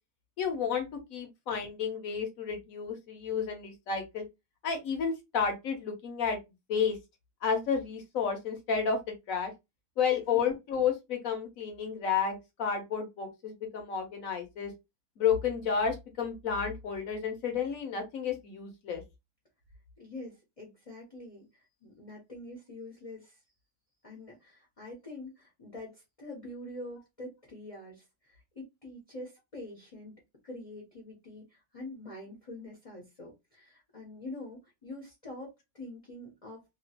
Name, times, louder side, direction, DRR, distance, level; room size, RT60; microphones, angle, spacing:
voice 1, 0.4-4.2 4.6-6.4 6.7-7.0 7.4-9.0 9.3-9.5 10.0-14.7 15.2-19.0, left 6 dB, 60° left, 1.1 m, -31 dB
voice 2, 20.0-23.4 24.0-30.1 30.4-36.6, left 1 dB, 30° left, 0.7 m, -45 dB
2.9 x 2.3 x 2.8 m
omnidirectional pair, 1.8 m